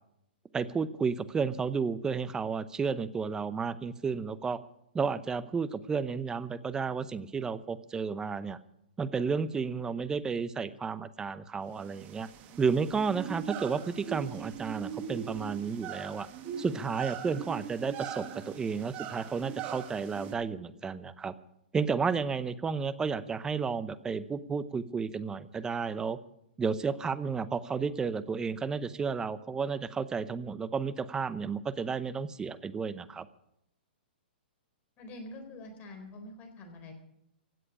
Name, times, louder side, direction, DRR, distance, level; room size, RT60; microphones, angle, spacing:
voice 1, 0.5-4.6 4.9-8.6 9.0-12.3 12.6-16.3 16.6-21.3 21.7-26.2 26.6-33.3, right 5 dB, 10° right, 15 dB, 0.7 m, -32 dB
sound 1, 11.8-20.3, right 9 dB, 30° right, 1.8 m, -41 dB
voice 2, 35.0-36.9, left 2 dB, 25° left, 4 dB, 4.1 m, -45 dB
16.5 x 7.7 x 9.9 m, 0.77 s
hypercardioid pair, 140°, 6 cm